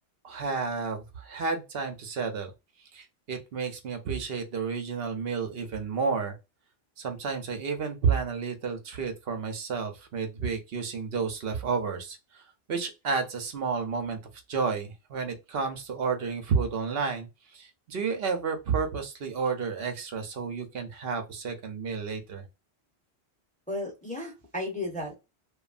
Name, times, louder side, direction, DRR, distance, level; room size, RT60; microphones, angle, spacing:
voice 1, 0.2-2.5 2.9-6.4 7.0-14.2 14.5-22.5, right 5 dB, 65° right, 0.9 m, -31 dB
voice 2, 23.7-25.1, left 1 dB, 10° left, 0.8 m, -34 dB
3.0 x 2.3 x 2.4 m
omnidirectional pair, 1.1 m